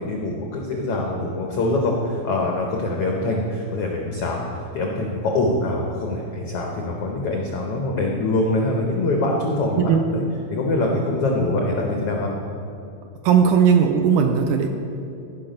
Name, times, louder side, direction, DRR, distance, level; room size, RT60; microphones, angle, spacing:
voice 1, 0.0-4.4 4.7-10.2 10.5-12.3, left 2 dB, 85° left, 0 dB, 1.3 m, -24 dB
voice 2, 13.2-14.7, right 7 dB, 80° right, 5 dB, 2.0 m, -17 dB
15.5 x 5.9 x 5.1 m, 2.7 s
omnidirectional pair, 4.0 m